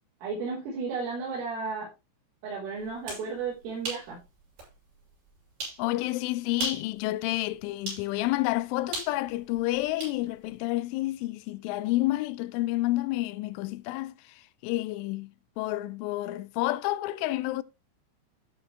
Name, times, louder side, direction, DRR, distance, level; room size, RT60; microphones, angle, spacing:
voice 1, 0.2-1.9 2.4-4.2, right 4 dB, 80° right, 6.7 m, -33 dB
sound 1, 2.9-3.3 3.8-4.1 4.6-4.7 5.6-5.8 6.5-6.9 7.9-8.1 8.9-10.2, right 3 dB, 55° right, 8.9 m, -35 dB
voice 2, 5.8-14.1 14.6-15.3 15.6-17.6, left 17 dB, 85° left, 3.0 m, -29 dB
14.0 x 6.2 x 3.3 m
omnidirectional pair, 5.8 m